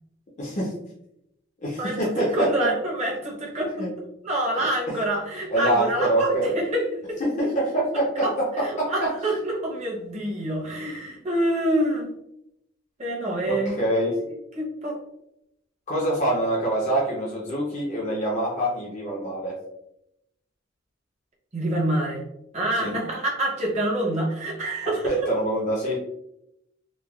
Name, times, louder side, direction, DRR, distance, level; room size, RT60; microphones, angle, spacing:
voice 1, 0.4-0.7 1.6-2.7 3.8-3.9 4.6-4.7 5.5-6.5 7.2-8.5 8.8-8.9 13.4-14.1 15.9-19.5 22.8-22.9 25.0-26.0, right 1 dB, 40° left, -5 dB, 0.6 m, -25 dB
voice 2, 1.8-3.8 4.2-7.0 8.2-8.3 8.6-12.1 13.0-13.8 14.5-15.0 21.5-22.2 22.5-25.1, right 1 dB, 35° right, -3 dB, 0.8 m, -26 dB
3.2 x 2.2 x 2.2 m, 0.80 s
head